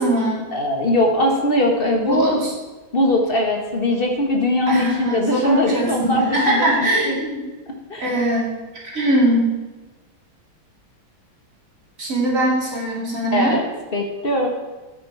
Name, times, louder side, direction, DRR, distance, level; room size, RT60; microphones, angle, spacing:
voice 1, 0.0-0.5 2.0-2.5 4.7-7.4 8.0-8.6 8.9-9.6 12.0-13.6, right 1 dB, 40° right, -3 dB, 3.0 m, -21 dB
voice 2, 0.5-2.4 2.9-6.7 7.0-7.2 7.9-8.1 13.3-13.6 13.9-14.5, left 1 dB, 30° left, 2 dB, 1.3 m, -20 dB
10.5 x 8.6 x 4.7 m, 1.2 s
omnidirectional pair, 2.3 m